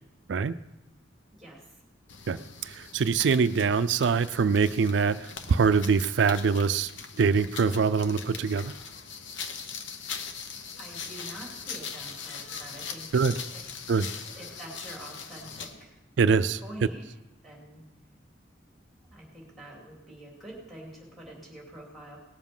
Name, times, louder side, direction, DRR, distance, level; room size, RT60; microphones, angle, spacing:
sound 1, 2.1-15.8, left 6 dB, 75° left, 0.9 m, -41 dB
voice 1, 2.6-6.9 7.2-8.7 13.1-13.4 13.9-14.1 16.2-16.6, right 5 dB, 65° right, 13 dB, 0.4 m, -24 dB
voice 2, 10.8-13.1 13.5-13.6 14.3-15.9 16.6-17.0 17.4-17.8 19.0-22.2, right 1 dB, ahead, -2 dB, 3.3 m, -46 dB
19.0 x 7.3 x 5.5 m, 0.98 s
head